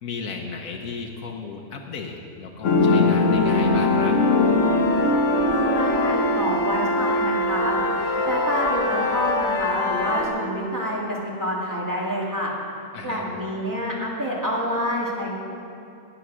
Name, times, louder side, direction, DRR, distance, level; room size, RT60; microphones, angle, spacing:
voice 1, 0.0-4.2 12.9-13.2, left 4 dB, 80° left, 1 dB, 1.4 m, -35 dB
sound 1, 2.6-10.2, left 2 dB, 65° left, 1.5 m, -21 dB
voice 2, 5.5-7.8 8.2-12.5 13.0-15.3, equal, 15° right, -4 dB, 2.4 m, -27 dB
20.5 x 7.0 x 6.2 m, 2.7 s
omnidirectional pair, 1.4 m